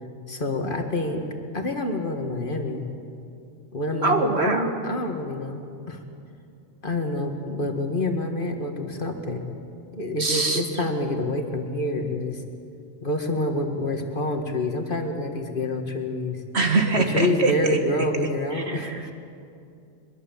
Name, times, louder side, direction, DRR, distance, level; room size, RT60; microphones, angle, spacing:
voice 1, 0.3-1.2 1.5-2.9 3.7-6.0 6.8-9.5 9.9-12.4 13.0-16.4 17.1-19.1, left 1 dB, 45° left, 4 dB, 2.0 m, -27 dB
voice 2, 4.0-4.7 10.2-10.6 16.5-17.8 18.5-19.1, right 3 dB, 60° right, 5 dB, 2.0 m, -23 dB
23.5 x 22.0 x 7.3 m, 2.5 s
omnidirectional pair, 1.2 m